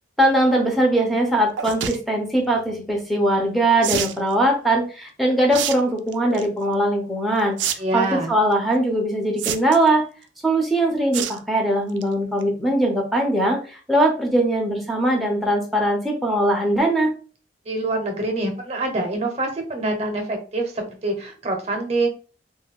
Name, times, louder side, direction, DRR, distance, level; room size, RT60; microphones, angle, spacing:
voice 1, 0.2-10.0 10.4-13.6 13.9-17.1, right 1 dB, ahead, 0 dB, 0.5 m, -21 dB
sound 1, 1.6-2.0 3.8-4.2 5.5-5.8 6.1-6.5 7.6-7.7 8.0-8.1 9.4-9.9 11.1-11.4 11.8-12.0 12.4-12.5 12.7-12.8, right 9 dB, 85° right, 0.3 m, -26 dB
voice 2, 7.8-8.3 17.6-22.1, right 2 dB, 35° right, 4 dB, 0.7 m, -25 dB
2.3 x 2.1 x 3.5 m, 0.37 s
head